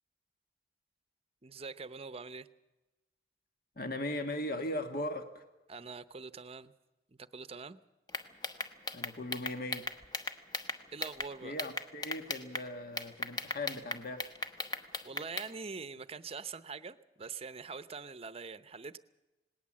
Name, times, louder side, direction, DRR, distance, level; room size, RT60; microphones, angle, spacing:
voice 1, 1.4-2.5 5.7-6.7 7.1-7.8 10.9-11.5 15.0-19.0, right 4 dB, 35° right, 14 dB, 0.7 m, -44 dB
voice 2, 3.8-5.4 8.9-9.8 11.4-14.3, left 1 dB, 55° left, 7 dB, 1.5 m, -38 dB
sound 1, 8.1-11.3 11.6-12.7 13.0-15.5, left 2 dB, 25° left, 1.1 m, -37 dB
19.0 x 18.5 x 7.5 m, 1.1 s
head